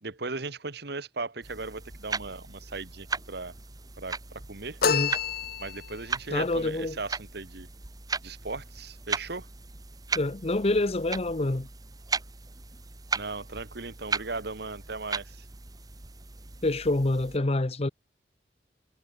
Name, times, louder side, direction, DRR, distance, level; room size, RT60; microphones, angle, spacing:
voice 1, 0.0-3.5 4.0-4.8 5.6-7.7 8.2-9.5 13.1-15.4, right 3 dB, 60° right, 1.6 m, -37 dB
sound 1, 1.4-17.4, right 4 dB, 20° right, 1.0 m, -37 dB
sound 2, 4.8-6.1, left 6 dB, 55° left, 1.3 m, -28 dB
voice 2, 6.3-7.0 10.1-11.7 16.6-17.9, left 2 dB, 35° left, 0.9 m, -26 dB
head